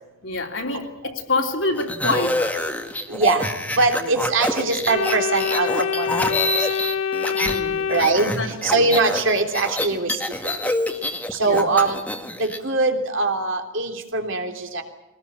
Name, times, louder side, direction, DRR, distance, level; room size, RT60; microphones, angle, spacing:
voice 1, 0.2-2.6 4.0-4.1 7.3-8.9 11.4-11.7, left 2 dB, 55° left, 3 dB, 3.3 m, -27 dB
sound 1, 1.8-7.6 7.9-12.6, left 1 dB, 5° left, 1.8 m, -26 dB
voice 2, 3.1-3.5 3.7-6.3 7.9-8.3 8.6-10.1 10.4-10.6 11.3-12.0 12.4-14.8, right 3 dB, 60° right, 4 dB, 3.2 m, -22 dB
Organ, 4.9-8.8, left 7 dB, 75° left, 1.0 m, -26 dB
23.5 x 19.5 x 8.9 m, 0.97 s
head